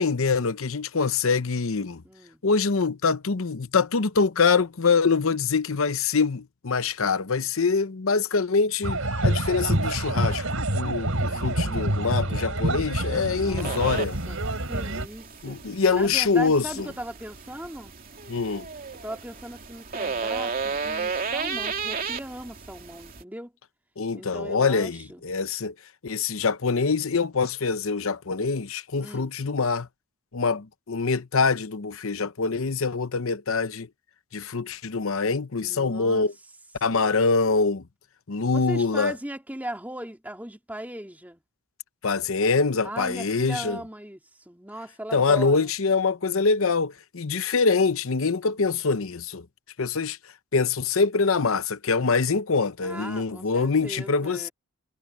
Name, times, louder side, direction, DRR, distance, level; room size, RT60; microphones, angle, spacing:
voice 1, 0.0-2.0 2.4-14.2 15.4-16.6 18.3-18.7 24.0-25.7 26.0-29.9 30.3-33.9 34.3-36.3 36.8-37.8 38.3-39.1 42.0-43.8 45.1-49.4 49.8-50.2 50.5-54.5, left 4 dB, 70° left, 0.8 m, -24 dB
voice 2, 2.0-2.4 11.0-12.5 13.3-13.9 14.3-15.6 15.9-17.9 19.0-23.5 24.1-25.2 29.0-29.3 35.6-36.3 36.8-37.0 38.5-41.4 42.8-45.7 52.8-54.5, right 1 dB, 10° right, 2.8 m, -38 dB
sound 1, 8.8-15.1, right 1 dB, 70° right, 4.2 m, -27 dB
sound 2, 13.6-23.2, right 5 dB, 40° right, 2.9 m, -34 dB
head